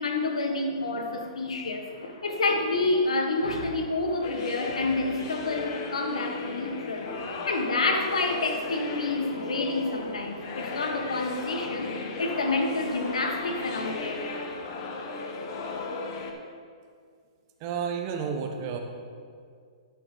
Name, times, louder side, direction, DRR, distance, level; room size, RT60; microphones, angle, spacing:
voice 1, 0.0-1.9 2.2-7.1 7.5-11.9 12.2-14.3, left 3 dB, 90° left, 3 dB, 1.3 m, -28 dB
sound 1, 1.1-14.4, left 2 dB, 70° left, 1.5 m, -45 dB
sound 2, 4.2-16.3, left 3 dB, 45° left, 1.1 m, -36 dB
voice 2, 17.6-18.8, right 6 dB, 40° right, 4 dB, 1.1 m, -31 dB
12.0 x 4.9 x 4.9 m, 2.1 s
hypercardioid pair, 140°, 3 cm